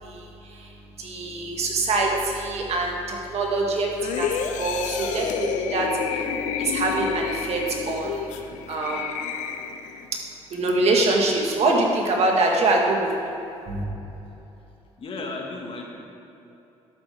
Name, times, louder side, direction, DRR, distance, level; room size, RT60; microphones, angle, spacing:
voice 1, 0.0-9.2 10.5-13.4 13.7-13.8, right 2 dB, 60° right, 0 dB, 1.9 m, -25 dB
sound 1, 4.0-10.1 10.5-10.7, left 7 dB, 80° left, 0.7 m, -30 dB
voice 2, 15.0-15.9, left 3 dB, 50° left, 0 dB, 1.9 m, -34 dB
11.5 x 8.3 x 3.6 m, 2.9 s
supercardioid pair, 80°, 12 cm